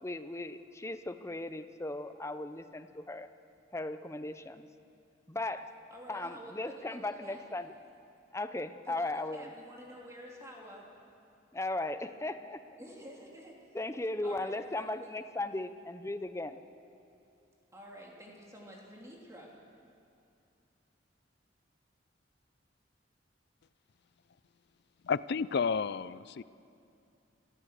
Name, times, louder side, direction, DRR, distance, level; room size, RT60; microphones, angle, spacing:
voice 1, 0.0-3.3 3.7-4.7 5.3-5.7 6.1-7.7 8.3-9.5 11.5-12.8 13.7-16.6, left 2 dB, 15° left, 10 dB, 0.7 m, -37 dB
voice 2, 5.9-7.4 8.8-10.9 12.8-13.8 14.2-14.9 17.7-19.5, equal, 15° right, -2 dB, 3.1 m, -49 dB
voice 3, 25.0-26.4, left 5 dB, 60° left, 17 dB, 0.4 m, -31 dB
27.0 x 15.0 x 6.7 m, 2.6 s
head